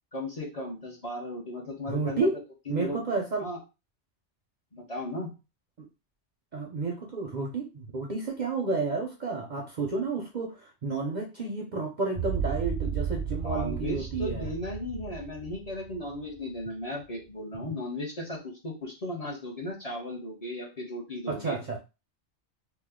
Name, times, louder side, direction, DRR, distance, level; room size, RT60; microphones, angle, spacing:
voice 1, 0.1-2.3 2.7-3.0 3.4-3.6 4.7-5.3 13.4-21.8, left 1 dB, 35° left, -3 dB, 1.0 m, -36 dB
voice 2, 1.8-2.4 2.7-3.5 6.5-14.5 17.6-17.7 21.3-21.8, right 3 dB, 50° right, 1 dB, 0.6 m, -31 dB
sound 1, 12.1-16.5, right 6 dB, 75° left, 1.3 m, -33 dB
2.9 x 2.2 x 3.6 m, 0.28 s
omnidirectional pair, 1.2 m